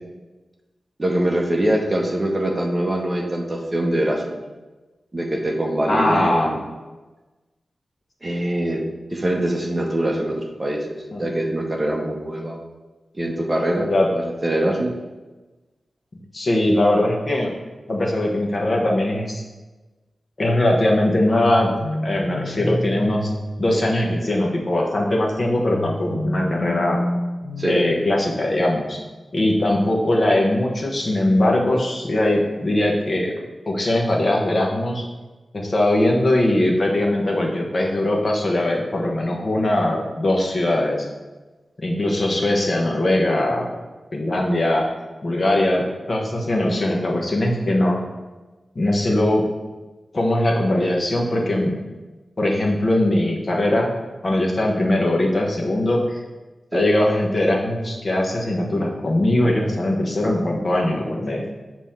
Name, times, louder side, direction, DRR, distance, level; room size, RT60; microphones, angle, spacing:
voice 1, 1.0-4.4 5.1-6.6 8.2-8.8 9.1-12.6 13.1-15.0 27.6-27.8 56.7-56.9, right 1 dB, 20° right, 1 dB, 0.8 m, -23 dB
voice 2, 5.8-6.5 11.1-11.3 13.9-14.1 16.3-17.5 17.9-19.4 20.4-21.7 22.0-23.3 23.6-27.0 27.6-29.0 29.3-33.3 33.7-35.0 35.5-41.1 41.8-43.7 44.1-44.9 45.2-48.0 48.7-49.4 50.1-51.8 52.4-53.9 54.2-56.2 56.7-61.4, left 1 dB, 40° left, -1 dB, 1.2 m, -20 dB
sound 1, 21.4-24.5 25.7-28.6, left 1 dB, 70° left, 0.6 m, -29 dB
7.0 x 3.0 x 5.7 m, 1.2 s
wide cardioid pair, 135°, 0 cm